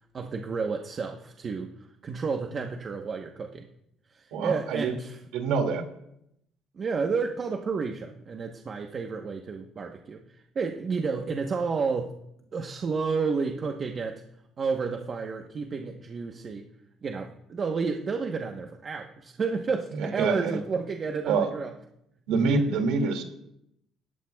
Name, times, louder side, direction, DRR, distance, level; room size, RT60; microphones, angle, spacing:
voice 1, 0.1-1.7 2.0-3.7 4.1-5.2 6.8-10.2 10.5-12.1 12.5-14.2 14.6-16.7 17.0-21.7 22.7-22.8, right 5 dB, 40° right, 3 dB, 1.1 m, -31 dB
voice 2, 4.3-4.9 5.3-5.8 20.0-20.6 21.3-21.5 22.3-23.2, right 4 dB, 85° right, 4 dB, 2.3 m, -26 dB
18.0 x 14.0 x 2.3 m, 0.78 s
cardioid pair, 110°, 0 cm